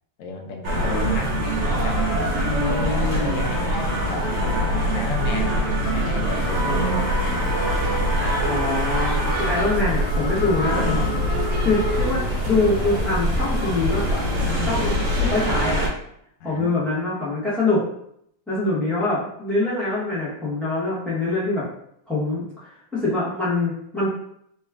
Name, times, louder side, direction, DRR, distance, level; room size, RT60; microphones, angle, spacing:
voice 1, 0.2-2.0 2.6-8.6 14.7-15.2 16.4-16.7, left 3 dB, 90° left, 2 dB, 0.7 m, -34 dB
sound 1, 0.6-15.9, equal, 85° right, 1.7 m, -23 dB
voice 2, 2.4-3.5 6.6-7.0 8.4-11.0 11.6-14.3 14.6-15.9 16.4-17.9 18.5-21.7 22.1-22.4 22.9-24.1, left 2 dB, ahead, -10 dB, 0.3 m, -24 dB
sound 2, 6.3-15.0, left 1 dB, 55° left, 1.6 m, -34 dB
4.0 x 2.3 x 3.4 m, 0.72 s
omnidirectional pair, 2.1 m